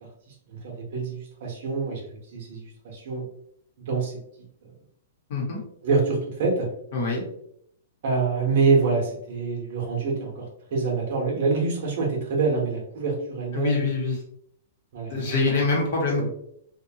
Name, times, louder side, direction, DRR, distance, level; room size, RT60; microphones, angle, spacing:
voice 1, 0.5-2.1 2.3-3.2 3.8-4.1 5.8-6.7 8.0-10.5 10.7-13.9 14.9-15.4 16.1-16.3, right 4 dB, 45° right, -1 dB, 0.9 m, -26 dB
voice 2, 5.3-5.6 6.9-7.2 13.5-14.1 15.1-16.3, left 3 dB, 45° left, -2 dB, 0.9 m, -24 dB
2.8 x 2.2 x 2.7 m, 0.70 s
hypercardioid pair, 175°, 0 cm